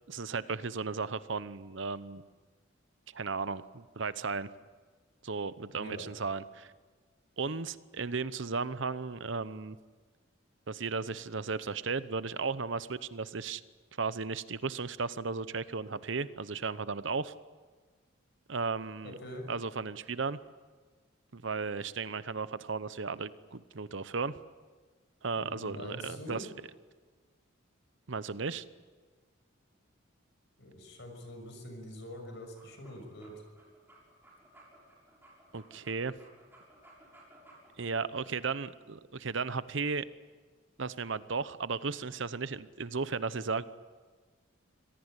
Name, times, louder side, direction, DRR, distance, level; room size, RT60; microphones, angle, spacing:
voice 1, 0.1-2.2 3.1-4.5 5.2-6.7 7.4-9.8 10.7-13.6 14.0-17.3 18.5-19.1 19.5-20.4 21.3-24.4 25.2-26.5 28.1-28.6 35.5-36.1 37.8-40.0 40.8-43.6, right 4 dB, 65° right, 15 dB, 0.8 m, -35 dB
voice 2, 5.7-6.0 19.0-19.5 25.3-26.4 30.6-33.4, equal, 60° left, 5 dB, 6.1 m, -44 dB
sound 1, 32.4-37.9, right 1 dB, 10° right, 6.7 m, -59 dB
25.5 x 17.5 x 9.9 m, 1.4 s
head